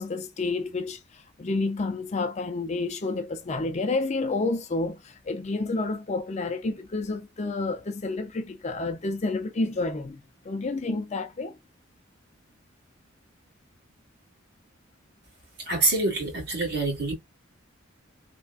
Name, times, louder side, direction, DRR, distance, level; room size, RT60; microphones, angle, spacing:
voice 1, 0.0-11.6, left 3 dB, 35° left, 0.4 m, -30 dB
voice 2, 15.7-17.1, right 2 dB, 50° right, 1.8 m, -26 dB
3.3 x 2.1 x 2.3 m
head